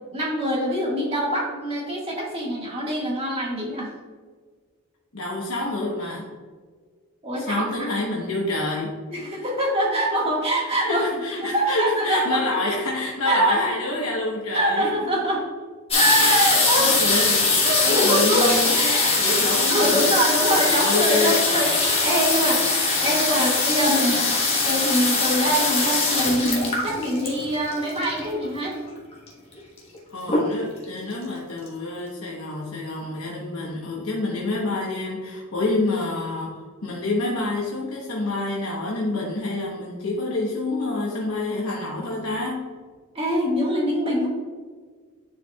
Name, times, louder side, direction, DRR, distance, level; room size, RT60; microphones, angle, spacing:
voice 1, 0.1-3.9 7.2-7.9 9.1-11.0 11.4-12.4 13.2-13.6 14.5-15.4 15.9-19.4 19.7-24.3 24.6-28.8 43.1-44.3, right 1 dB, 25° right, -3 dB, 1.7 m, -24 dB
voice 2, 5.1-6.3 7.4-8.9 10.8-14.9 16.3-16.5 16.8-17.4 17.8-20.1 20.6-21.5 23.2-23.3 30.1-42.7, left 2 dB, 70° left, -3 dB, 1.1 m, -27 dB
sound 1, 15.9-28.4 29.3-29.4 29.6-30.0 30.3-30.8 31.4-31.5 31.7-31.8, left 3 dB, 25° left, 1.3 m, -22 dB
10.0 x 4.4 x 2.3 m, 1.5 s
head